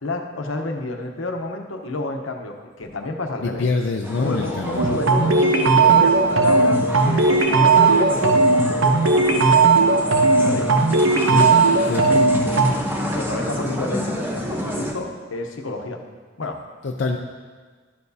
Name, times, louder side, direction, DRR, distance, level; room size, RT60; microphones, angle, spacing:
voice 1, 0.0-3.7 4.2-8.5 8.9-9.4 10.4-10.7 13.1-16.0 16.4-16.6, left 2 dB, 85° left, 3 dB, 0.9 m, -29 dB
voice 2, 3.4-4.9 11.3-11.6 11.8-12.3 16.8-17.2, left 3 dB, 60° left, 1 dB, 0.5 m, -25 dB
sound 1, 4.0-14.9, equal, 10° right, 0.8 m, -30 dB
sound 2, 4.8-12.7, right 3 dB, 85° right, 0.8 m, -17 dB
12.0 x 6.9 x 2.7 m, 1.5 s
head